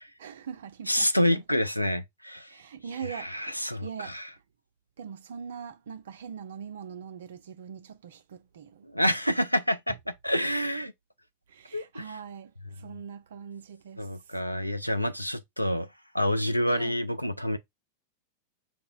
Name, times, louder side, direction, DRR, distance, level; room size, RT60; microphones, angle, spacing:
voice 1, 0.2-1.4 2.5-4.2 5.0-8.9 11.5-14.1 16.7-17.0, right 7 dB, 60° right, 0.4 m, -42 dB
voice 2, 0.9-2.5 3.1-4.3 8.8-10.0 10.2-10.9 11.7-12.0 14.0-15.9 16.1-17.6, equal, 90° left, 0.3 m, -27 dB
5.2 x 2.0 x 2.3 m
figure-of-eight pair, 90°, 0 cm